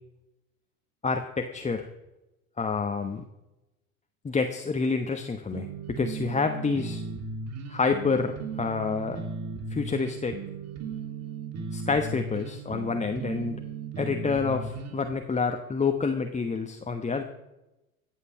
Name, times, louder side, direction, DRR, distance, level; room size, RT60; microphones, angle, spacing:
voice 1, 1.0-1.9 2.6-3.2 4.2-7.0 7.7-9.2 9.7-10.4 11.7-13.6 14.0-17.2, left 4 dB, 15° left, 6 dB, 1.1 m, -28 dB
sound 1, 5.5-15.1, right 4 dB, 35° right, 2.3 m, -36 dB
15.0 x 8.0 x 7.3 m, 0.97 s
hypercardioid pair, 80°, 42 cm